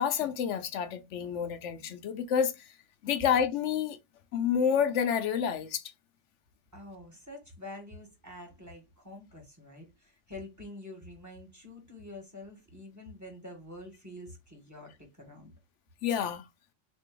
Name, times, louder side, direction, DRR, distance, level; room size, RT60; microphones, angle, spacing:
voice 1, 0.0-2.7 3.0-4.0 4.3-5.8 16.0-16.4, left 8 dB, 75° left, 1.0 m, -29 dB
voice 2, 6.7-15.5, left 1 dB, 15° right, 1.3 m, -47 dB
3.8 x 2.7 x 3.7 m
omnidirectional pair, 1.2 m